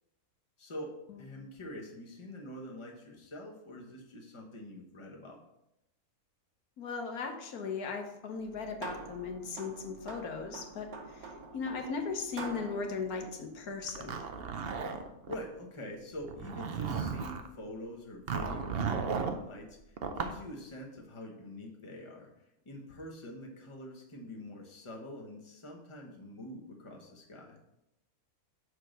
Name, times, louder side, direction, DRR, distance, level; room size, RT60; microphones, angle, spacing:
voice 1, 0.6-5.4 15.3-27.6, left 1 dB, 20° left, 0 dB, 1.2 m, -45 dB
voice 2, 6.8-14.2, left 5 dB, 75° left, 4 dB, 1.5 m, -38 dB
sound 1, 8.4-14.2, right 4 dB, 70° right, 1.4 m, -47 dB
Zipper (clothing), 13.9-15.4 16.2-17.5 18.3-19.4 20.0-20.4, right 6 dB, 55° right, 0.7 m, -35 dB
6.5 x 4.7 x 6.6 m, 0.86 s
omnidirectional pair, 1.6 m